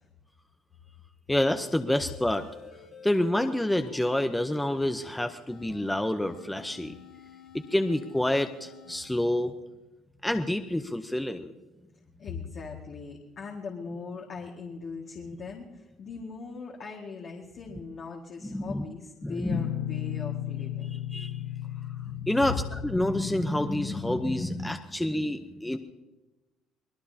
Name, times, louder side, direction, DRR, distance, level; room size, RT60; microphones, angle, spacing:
voice 1, 1.3-2.5 3.0-6.9 7.5-9.5 10.2-11.5 18.5-18.8 19.2-19.6 21.1-21.3 22.2-25.8, left 1 dB, 5° left, 7 dB, 0.8 m, -28 dB
sound 1, 2.0-5.1 5.5-9.0, left 7 dB, 70° left, 4.7 m, -50 dB
voice 2, 12.2-21.0 21.4-21.8, left 5 dB, 50° left, -1 dB, 2.0 m, -40 dB
Guitar, 19.5-24.7, left 12 dB, 85° left, 0.7 m, -35 dB
25.0 x 19.0 x 2.9 m, 1.1 s
cardioid pair, 100°, 0 cm